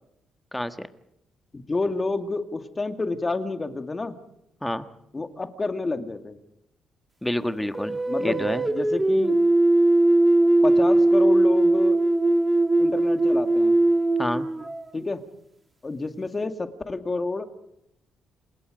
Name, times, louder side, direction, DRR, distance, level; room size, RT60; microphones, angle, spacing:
voice 1, 0.5-0.9 4.6-4.8 7.2-8.6 14.2-14.5, left 1 dB, 5° left, 10 dB, 1.5 m, -28 dB
voice 2, 1.5-4.2 5.1-6.4 8.1-9.4 10.6-12.0 12.8-13.7 14.9-15.2 15.8-17.5, left 3 dB, 25° left, 8 dB, 2.1 m, -29 dB
sound 1, 7.7-15.1, right 2 dB, 15° right, 2.0 m, -20 dB
27.5 x 20.5 x 5.2 m, 0.79 s
cardioid pair, 90°, 0 cm